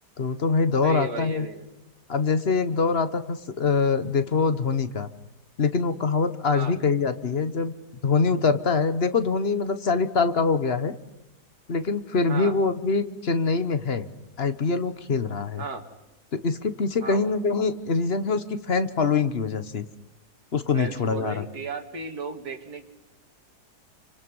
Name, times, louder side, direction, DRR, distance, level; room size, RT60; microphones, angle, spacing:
voice 1, 0.2-1.5 2.1-5.1 5.6-7.7 8.0-10.9 11.7-14.0 14.4-15.6 16.3-19.9 20.5-21.4, left 4 dB, 40° left, 11 dB, 1.2 m, -24 dB
voice 2, 0.8-1.7 6.5-6.8 12.3-12.6 15.6-15.8 17.0-17.3 20.7-22.8, right 4 dB, 65° right, 5 dB, 2.6 m, -35 dB
28.5 x 25.5 x 5.5 m, 0.89 s
omnidirectional pair, 1.8 m